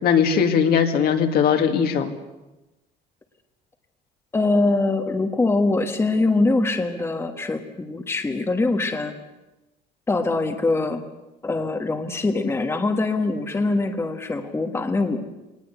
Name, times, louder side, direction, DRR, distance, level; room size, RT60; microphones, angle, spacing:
voice 1, 0.0-2.1, left 7 dB, 60° left, 5 dB, 2.2 m, -19 dB
voice 2, 4.3-9.1 10.1-11.0 11.4-15.2, left 3 dB, 15° left, 5 dB, 1.4 m, -23 dB
22.0 x 19.0 x 8.2 m, 1.0 s
cardioid pair, 155°, 18 cm